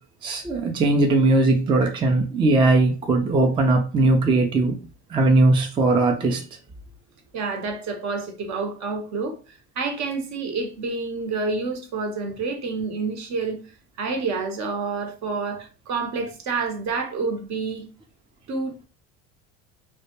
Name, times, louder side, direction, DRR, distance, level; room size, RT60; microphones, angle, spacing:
voice 1, 0.2-4.8 5.1-6.4, right 2 dB, 15° right, 0.3 m, -19 dB
voice 2, 7.3-13.6 14.0-17.8 18.5-18.7, right 4 dB, 55° right, 0.8 m, -28 dB
2.2 x 2.0 x 2.9 m
supercardioid pair, 90°, 34 cm